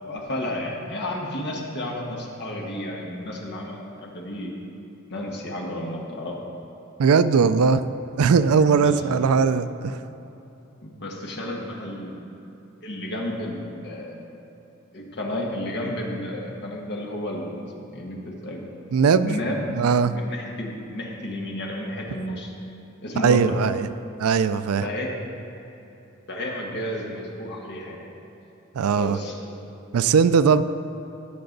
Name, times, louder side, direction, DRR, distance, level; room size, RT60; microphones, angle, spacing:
voice 1, 0.0-4.5 5.1-6.3 8.7-9.2 10.8-12.1 12.8-14.2 14.9-17.5 17.9-18.6 19.2-19.7 20.0-22.5 23.0-23.6 24.8-25.1 26.3-28.1 29.0-29.4, left 1 dB, 50° left, -1 dB, 1.5 m, -32 dB
voice 2, 7.0-7.8 8.2-10.0 18.9-19.4 19.8-20.2 23.2-23.9 24.2-24.8 28.7-29.2 29.9-30.6, right 5 dB, 80° right, 13 dB, 0.4 m, -19 dB
17.0 x 6.9 x 4.0 m, 2.9 s
head